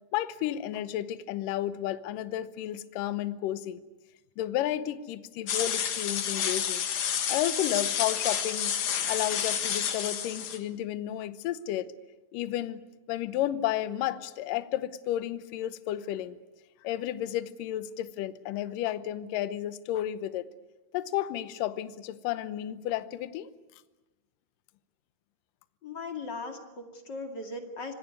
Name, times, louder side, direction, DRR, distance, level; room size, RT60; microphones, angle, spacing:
voice 1, 0.1-3.8 4.4-6.9 7.3-8.8 9.0-11.9 12.3-12.8 13.1-16.4 16.8-20.5 20.9-23.5, left 12 dB, 70° left, 13 dB, 2.3 m, -32 dB
sound 1, 5.5-10.6, left 8 dB, 55° left, 2.3 m, -30 dB
voice 2, 25.8-27.9, left 3 dB, 35° left, 4 dB, 2.3 m, -38 dB
25.5 x 19.0 x 9.6 m, 1.1 s
omnidirectional pair, 4.6 m